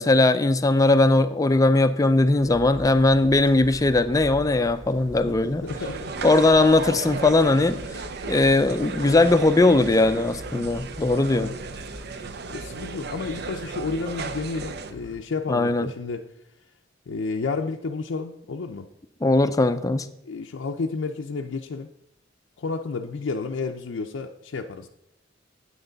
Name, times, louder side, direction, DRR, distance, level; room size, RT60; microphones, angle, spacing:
voice 1, 0.0-5.6 6.2-7.8 8.3-11.5 15.5-15.9 19.2-20.1, left 2 dB, 20° left, 11 dB, 0.4 m, -19 dB
sound 1, 2.4-15.2, left 1 dB, 75° right, 1.9 m, -42 dB
voice 2, 5.3-6.3 11.4-11.5 12.5-16.3 17.1-18.9 20.2-21.9 22.6-24.9, left 4 dB, 80° left, 3 dB, 0.5 m, -31 dB
sound 2, 5.7-14.9, right 4 dB, 55° right, 0.6 m, -35 dB
8.9 x 8.5 x 3.9 m, 0.82 s
head